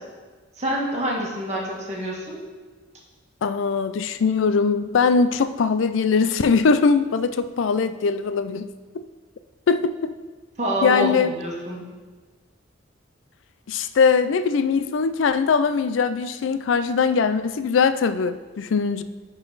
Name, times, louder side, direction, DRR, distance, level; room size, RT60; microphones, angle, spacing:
voice 1, 0.6-2.4 10.6-11.8, equal, 35° right, -4 dB, 1.7 m, -26 dB
voice 2, 3.4-9.0 9.7-10.1 10.8-11.3 13.7-19.0, left 5 dB, 85° left, 12 dB, 0.4 m, -21 dB
10.5 x 4.0 x 4.0 m, 1.4 s
head